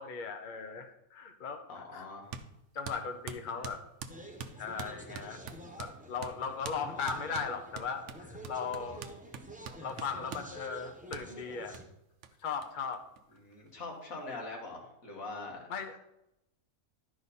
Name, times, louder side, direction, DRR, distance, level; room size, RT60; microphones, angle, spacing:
voice 1, 0.0-2.0 2.7-3.8 4.6-5.4 5.8-9.0 9.8-11.8 12.4-13.0 15.7-16.0, left 5 dB, 45° left, 7 dB, 0.7 m, -38 dB
voice 2, 1.7-2.4 3.6-3.7 8.9-9.0 13.4-15.6, left 3 dB, 75° left, 0 dB, 2.1 m, -43 dB
sound 1, 2.3-2.5 2.9-6.0 6.2-6.4 6.6-6.8 7.1-10.5 11.1-11.3 11.7-11.8 12.2-12.3 12.6-12.7 12.9-13.7, right 6 dB, 65° right, 0.9 m, -44 dB
sound 2, 4.1-11.8, right 1 dB, 10° right, 0.6 m, -49 dB
12.0 x 4.9 x 4.2 m, 0.86 s
omnidirectional pair, 1.5 m